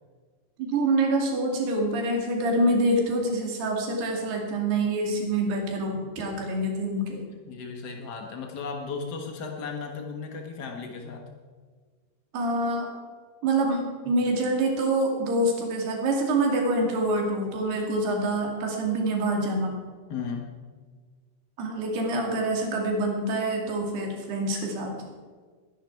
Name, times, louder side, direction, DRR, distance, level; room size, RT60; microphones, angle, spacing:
voice 1, 0.6-7.2 12.3-12.9 13.4-19.8 21.6-24.9, right 1 dB, 85° right, 1 dB, 4.5 m, -26 dB
voice 2, 7.5-11.3 20.1-20.5, left 5 dB, 85° left, 2 dB, 0.9 m, -35 dB
21.5 x 10.5 x 4.7 m, 1.5 s
omnidirectional pair, 4.5 m